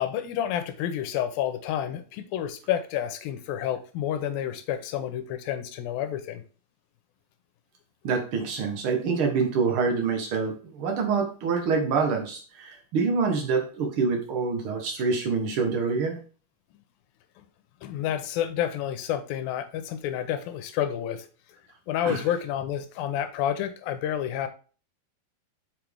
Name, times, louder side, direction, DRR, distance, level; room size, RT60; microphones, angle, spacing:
voice 1, 0.0-6.4 17.8-21.3 21.9-24.5, left 10 dB, 85° left, 10 dB, 2.5 m, -29 dB
voice 2, 8.0-16.2 22.0-22.2, right 5 dB, 65° right, 3 dB, 1.3 m, -26 dB
6.0 x 5.8 x 3.4 m, 0.37 s
omnidirectional pair, 4.2 m